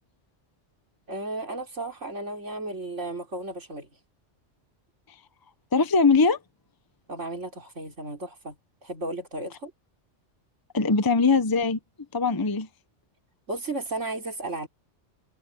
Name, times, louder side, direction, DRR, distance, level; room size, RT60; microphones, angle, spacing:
voice 1, 1.1-3.9 7.1-8.5 8.8-9.7 13.5-14.7, right 2 dB, 90° right, 4.4 m, -34 dB
voice 2, 5.7-6.4 10.7-11.8 12.1-12.7, left 4 dB, 20° left, 0.8 m, -21 dB
omnidirectional pair, 1.2 m